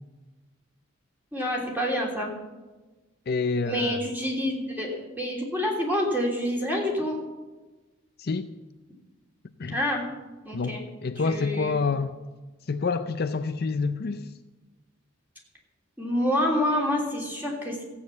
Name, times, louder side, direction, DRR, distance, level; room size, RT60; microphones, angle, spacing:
voice 1, 1.3-2.3 3.6-7.2 9.7-10.0 10.4-10.8 11.2-11.8 16.0-17.8, left 1 dB, 10° right, 3.1 m, -27 dB
voice 2, 3.3-4.0 8.2-8.5 9.6-9.8 10.5-12.2 12.7-14.3, left 4 dB, 50° left, 0.5 m, -28 dB
15.0 x 8.6 x 7.1 m
head